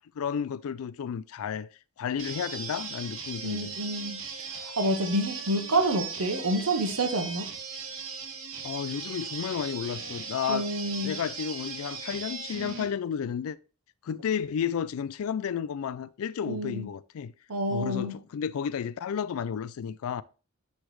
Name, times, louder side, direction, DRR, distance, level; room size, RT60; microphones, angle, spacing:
voice 1, 0.2-1.7 2.0-3.7 8.6-10.7 11.0-13.6 14.0-17.3 17.7-20.2, left 7 dB, 75° left, 0.3 m, -32 dB
sound 1, 2.2-12.9, right 5 dB, 65° right, 1.0 m, -38 dB
voice 2, 3.4-7.5 10.5-11.1 16.4-16.9 17.5-18.1, right 1 dB, 90° right, 1.1 m, -28 dB
9.8 x 3.3 x 3.2 m
head